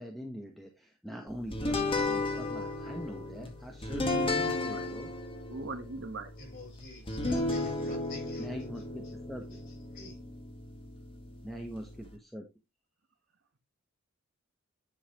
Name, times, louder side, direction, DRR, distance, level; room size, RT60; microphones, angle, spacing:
voice 1, 0.0-5.1 8.4-9.6 11.4-12.5, equal, ahead, 1.1 m, -43 dB
sound 1, 1.5-12.2, left 2 dB, 25° left, 1.8 m, -34 dB
voice 2, 4.1-4.9 5.5-6.3, right 3 dB, 55° right, 1.2 m, -41 dB
voice 3, 6.4-8.5 9.0-9.1 9.5-10.2, left 2 dB, 45° left, 5.1 m, -48 dB
9.9 x 5.6 x 3.0 m
head